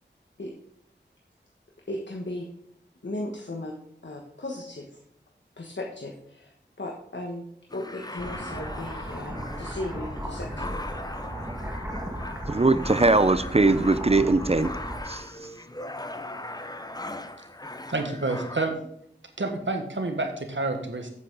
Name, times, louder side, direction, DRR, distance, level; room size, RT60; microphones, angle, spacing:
voice 1, 1.9-2.5 3.0-3.7 4.0-5.0 5.6-6.5 6.8-7.5 7.7-10.7, left 1 dB, 70° left, 0 dB, 1.3 m, -36 dB
sound 1, 7.7-18.7, left 1 dB, 20° left, 0.7 m, -39 dB
sound 2, 8.2-15.0, equal, 10° right, 1.7 m, -36 dB
voice 2, 12.5-14.7 15.1-15.2, right 3 dB, 30° right, 13 dB, 0.5 m, -21 dB
voice 3, 17.9-18.7 19.4-21.1, right 2 dB, 80° right, 4 dB, 1.5 m, -28 dB
8.3 x 8.1 x 3.9 m, 0.72 s
wide cardioid pair, 45°, 19 cm